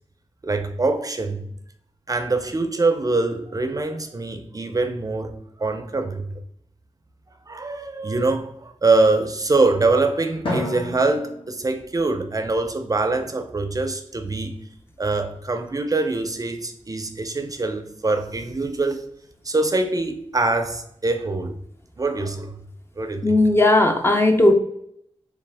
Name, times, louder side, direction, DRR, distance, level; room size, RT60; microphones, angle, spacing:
voice 1, 0.4-1.5 2.1-6.4 7.5-14.7 15.0-19.1 19.4-21.6 22.0-22.6 23.0-23.3, right 3 dB, 35° right, 6 dB, 0.5 m, -24 dB
Drum, 10.4-12.7, left 1 dB, 55° left, 1.3 m, -32 dB
voice 2, 23.2-24.5, left 2 dB, 20° left, 4 dB, 0.6 m, -16 dB
3.6 x 3.4 x 3.4 m, 0.72 s
wide cardioid pair, 75°, 11 cm